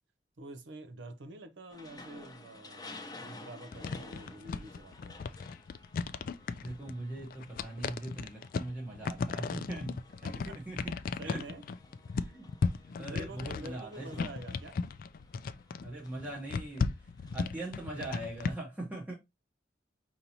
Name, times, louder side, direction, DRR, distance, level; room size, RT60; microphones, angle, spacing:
voice 1, 0.4-5.2 10.2-10.6 11.2-11.6 13.0-14.8, right 1 dB, 85° right, 0.7 m, -47 dB
sound 1, 1.7-17.5, left 2 dB, 20° left, 0.7 m, -54 dB
sound 2, 3.7-18.5, left 4 dB, 50° left, 0.3 m, -36 dB
voice 2, 6.6-10.9 11.2-11.4 12.1-12.5 13.0-14.2 15.8-19.2, right 2 dB, 10° right, 0.9 m, -41 dB
5.2 x 2.9 x 2.8 m
head